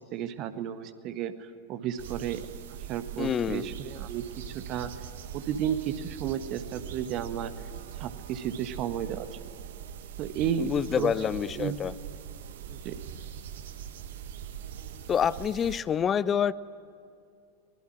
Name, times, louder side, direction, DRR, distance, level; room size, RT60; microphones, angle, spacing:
voice 1, 0.0-2.4 2.7-4.9 5.3-7.5 7.9-9.3 10.2-11.1 11.5-11.8 12.6-13.0, right 9 dB, 40° right, 10 dB, 1.5 m, -33 dB
sound 1, 2.0-15.8, right 9 dB, 60° right, 1.5 m, -42 dB
voice 2, 3.2-3.7 10.6-11.9 15.1-16.5, left 8 dB, 25° left, 18 dB, 0.6 m, -27 dB
24.5 x 21.0 x 8.8 m, 2.5 s
figure-of-eight pair, 90°, 0 cm